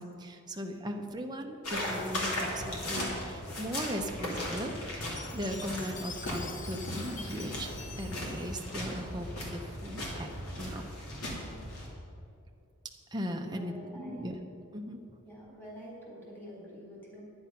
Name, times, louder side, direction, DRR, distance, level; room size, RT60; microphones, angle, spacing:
voice 1, 0.0-10.3 10.6-10.8 11.6-11.7 13.1-14.4 14.7-15.0, equal, 20° right, 2 dB, 0.8 m, -38 dB
sound 1, 1.6-11.9, left 1 dB, 85° left, 2.7 m, -37 dB
sound 2, 2.9-3.5, right 3 dB, 55° right, 0.5 m, -43 dB
Chime, 5.2-9.5, left 5 dB, 35° left, 0.9 m, -47 dB
voice 2, 13.4-14.3 15.2-17.2, equal, 10° left, -5 dB, 3.4 m, -47 dB
11.0 x 9.7 x 5.8 m, 2.6 s
head